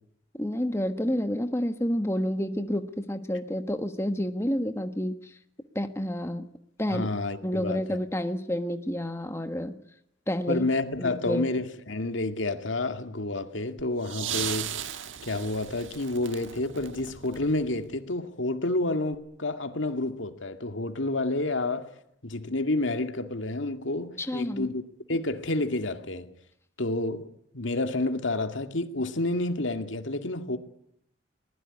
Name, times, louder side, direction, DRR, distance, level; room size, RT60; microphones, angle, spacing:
voice 1, 0.3-5.3 5.7-6.5 6.8-7.1 7.4-9.8 10.3-10.6 11.0-11.5 24.2-24.7, equal, 15° left, 1.4 m, -29 dB
voice 2, 6.9-8.0 10.5-14.7 15.2-21.9 22.2-24.8 25.1-26.3 26.8-30.6, left 2 dB, 80° left, 2.2 m, -29 dB
sound 1, 13.8-18.0 19.1-19.2, right 9 dB, 85° right, 1.5 m, -37 dB
22.5 x 20.5 x 9.9 m
head